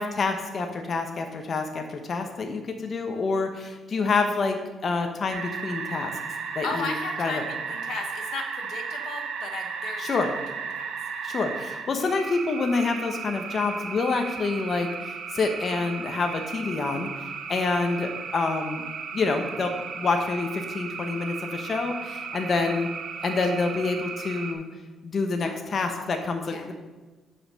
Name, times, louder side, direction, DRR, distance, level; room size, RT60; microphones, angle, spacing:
voice 1, 0.0-4.6 4.8-6.1 6.5-7.4 10.0-10.3 11.2-17.1 17.5-18.8 19.1-22.9 23.2-24.6 25.0-26.7, left 3 dB, 45° left, 5 dB, 1.0 m, -27 dB
sound 1, 5.3-24.5, right 6 dB, 70° right, 1.0 m, -35 dB
voice 2, 6.6-10.3 10.7-10.9 22.6-22.8 25.4-26.1 26.5-26.7, left 4 dB, 75° left, 4 dB, 1.1 m, -36 dB
6.9 x 5.5 x 6.3 m, 1.3 s
cardioid pair, 90°, 0 cm